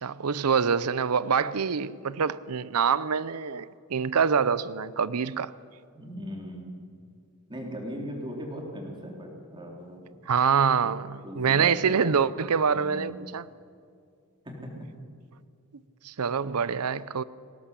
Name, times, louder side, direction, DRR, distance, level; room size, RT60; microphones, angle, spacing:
voice 1, 0.0-5.5 10.3-13.5 16.0-17.2, right 6 dB, 85° right, 0.6 m, -25 dB
voice 2, 5.9-6.9 7.5-10.1 10.8-10.9 11.2-12.3 12.7-13.2 14.5-14.9, equal, 20° right, 3.8 m, -38 dB
19.5 x 17.5 x 8.3 m
head